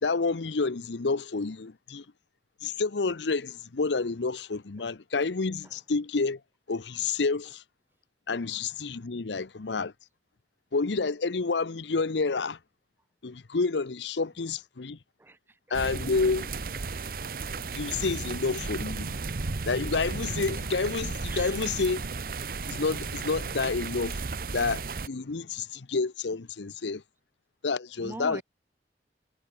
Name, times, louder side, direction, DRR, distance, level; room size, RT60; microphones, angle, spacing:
voice 1, 0.0-2.0 2.6-6.4 6.7-7.6 8.3-9.9 10.7-12.6 13.2-15.0 15.7-16.5 17.7-19.1 19.7-22.1 22.7-24.2 24.5-27.0 27.6-28.4, left 4 dB, 85° left, 0.8 m, -29 dB
voice 2, 15.2-15.6 18.0-18.1 21.3-21.7 28.0-28.4, right 2 dB, 10° right, 0.4 m, -42 dB
sound 1, 15.7-25.1, right 4 dB, 55° right, 0.8 m, -34 dB
head